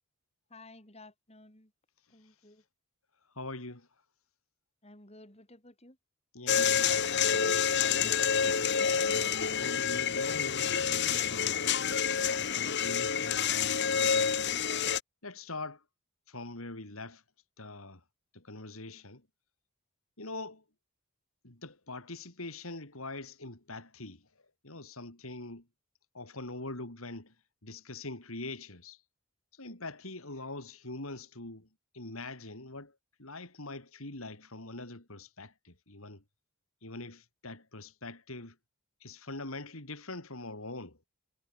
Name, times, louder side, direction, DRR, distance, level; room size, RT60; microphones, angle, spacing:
voice 1, 0.5-1.7 2.1-2.6 4.8-6.0, left 2 dB, 30° left, 5.1 m, -54 dB
voice 2, 3.4-3.9 6.3-8.2 9.0-11.6 12.2-14.4 15.2-15.8 16.3-17.2 17.6-18.0 18.3-19.2 20.2-20.6 21.4-24.2 24.6-25.6 26.1-27.3 27.6-29.0 29.5-31.7 31.9-32.9 33.2-36.2 36.8-38.6 39.0-41.0, left 2 dB, 70° left, 3.9 m, -43 dB
sound 1, 6.5-15.0, left 7 dB, 50° left, 1.4 m, -28 dB
head